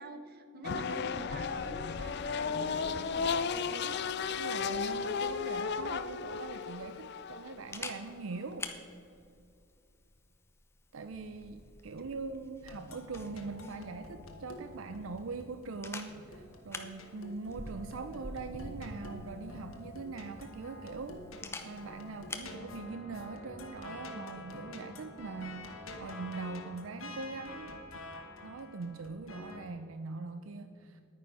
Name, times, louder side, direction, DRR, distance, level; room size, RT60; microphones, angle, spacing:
voice 1, 0.0-3.9 12.0-12.1, right 2 dB, 50° right, 8 dB, 1.0 m, -46 dB
sound 1, 0.6-8.5, left 6 dB, 55° left, 0.4 m, -34 dB
voice 2, 4.3-8.7 10.9-21.2 21.6-27.8 28.4-31.0, right 4 dB, 75° right, 9 dB, 0.5 m, -42 dB
Camera, 5.9-22.6, left 2 dB, 10° left, 0.8 m, -48 dB
sound 2, 12.7-29.6, left 2 dB, 80° left, 1.4 m, -48 dB
10.5 x 9.5 x 5.5 m, 2.5 s
head